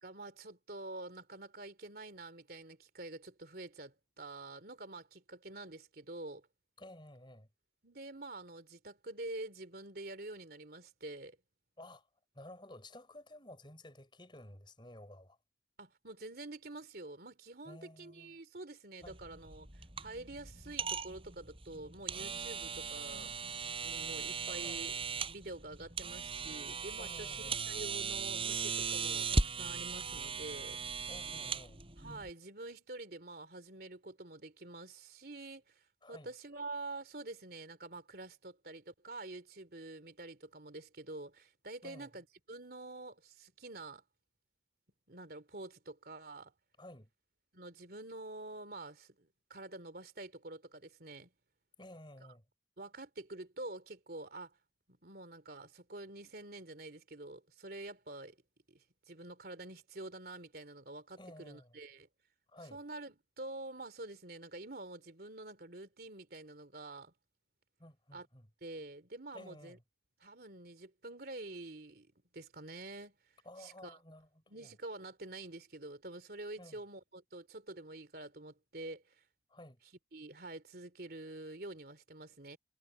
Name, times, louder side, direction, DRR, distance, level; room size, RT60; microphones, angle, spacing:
voice 1, 0.0-6.5 7.8-11.4 15.8-19.7 20.0-23.3 23.8-24.9 25.3-30.8 32.0-35.8 36.1-44.0 45.1-46.5 47.5-51.3 52.8-54.6 54.9-58.4 58.7-62.1 62.7-67.1 68.1-68.3 68.6-69.8 70.2-72.1 72.3-73.2 73.6-74.0 74.5-79.2 80.1-82.6, right 2 dB, 55° right, 3.4 m, -47 dB
voice 2, 6.8-7.5 11.8-12.1 12.3-15.4 17.6-18.4 19.0-19.2 24.5-24.9 27.0-27.7 31.1-31.8 36.0-36.3 41.8-42.1 46.8-47.1 51.8-52.4 61.2-61.8 62.5-62.8 67.8-68.5 69.3-69.8 73.4-74.7 76.6-76.8 79.5-79.8, left 1 dB, 25° left, 5.9 m, -53 dB
sound 1, 19.0-32.3, right 4 dB, 30° right, 6.1 m, -38 dB
head